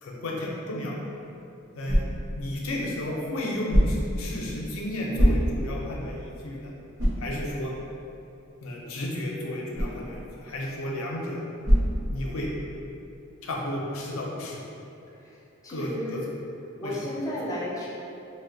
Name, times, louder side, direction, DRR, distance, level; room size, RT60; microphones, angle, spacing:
voice 1, 0.0-0.9 1.8-2.0 2.3-6.7 7.2-7.7 8.6-11.4 12.1-12.5 13.4-14.6 15.7-16.3 16.8-17.0, left 1 dB, 85° left, -3 dB, 0.5 m, -33 dB
sound 1, 1.1-12.7, equal, 80° right, 0.8 m, -29 dB
voice 2, 15.6-16.2 16.8-17.9, equal, 15° left, -6 dB, 0.4 m, -33 dB
2.7 x 2.1 x 3.8 m, 2.7 s
head